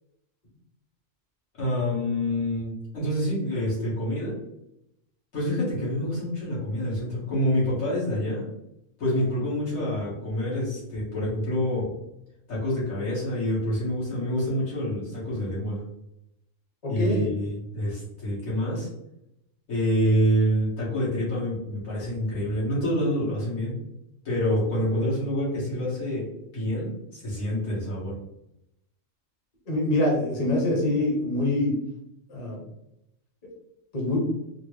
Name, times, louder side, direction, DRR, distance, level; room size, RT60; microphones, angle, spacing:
voice 1, 1.6-4.4 5.3-8.5 9.0-11.9 12.5-15.8 16.9-18.9 19.7-23.8 24.3-28.2, equal, 80° left, -7 dB, 1.9 m, -27 dB
voice 2, 16.8-17.3 29.7-31.8 32.3-32.6 33.9-34.3, left 1 dB, 35° left, -2 dB, 0.8 m, -24 dB
4.0 x 2.0 x 3.1 m, 0.84 s
omnidirectional pair, 1.4 m